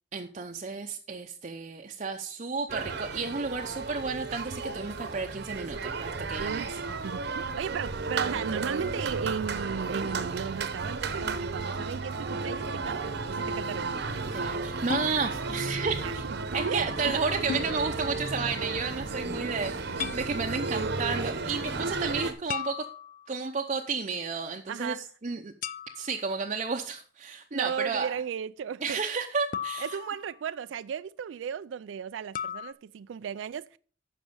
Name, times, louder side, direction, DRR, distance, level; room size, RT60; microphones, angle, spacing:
voice 1, 0.1-6.7 7.3-7.5 14.3-16.2 16.5-22.9 23.3-25.5 26.0-28.1 28.8-29.8, right 4 dB, 40° right, 0.7 m, -32 dB
sound 1, 2.7-22.3, right 3 dB, 60° right, 0.9 m, -33 dB
voice 2, 6.4-6.8 7.0-13.9 16.0-16.3 16.6-17.1 21.1-21.4 21.6-21.7 24.7-25.0 25.4-25.5 27.5-29.0 29.8-33.8, right 7 dB, 80° right, 0.3 m, -35 dB
sound 2, 14.9-15.1 17.5-17.7 20.0-20.3 22.5-23.4 25.6-26.2 29.5-30.5 32.4-32.7, left 8 dB, 45° left, 0.4 m, -35 dB
9.4 x 5.9 x 5.3 m
head